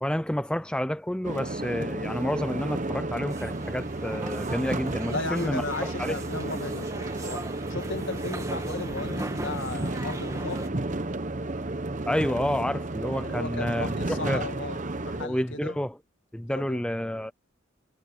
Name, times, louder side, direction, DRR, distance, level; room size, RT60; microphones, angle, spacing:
voice 1, 0.0-5.6 6.0-6.2 12.1-14.4 15.1-16.0 16.3-17.3, equal, 5° left, 0.5 m, -29 dB
sound 1, 1.2-15.3, right 2 dB, 35° right, 1.0 m, -32 dB
sound 2, 3.3-10.7, right 1 dB, 15° right, 1.8 m, -39 dB
voice 2, 5.1-10.7 13.2-15.8 16.5-16.8, left 3 dB, 65° left, 2.0 m, -36 dB
head